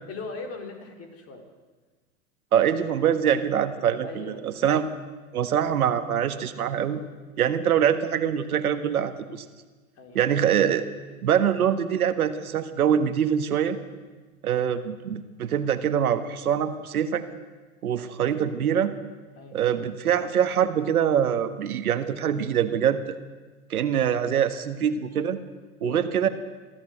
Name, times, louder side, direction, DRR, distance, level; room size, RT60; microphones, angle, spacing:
voice 1, 0.1-1.4 4.0-4.7 10.0-10.2 14.1-14.2 19.3-19.6 25.8-26.2, left 4 dB, 30° left, 4 dB, 4.2 m, -39 dB
voice 2, 2.5-4.8 5.3-7.0 7.4-9.4 10.1-10.8 11.2-13.8 14.4-17.2 17.8-18.9 19.5-23.1 23.7-25.4 25.8-26.3, right 9 dB, 75° right, 10 dB, 1.6 m, -24 dB
23.0 x 14.5 x 8.0 m, 1.3 s
hypercardioid pair, 100°, 44 cm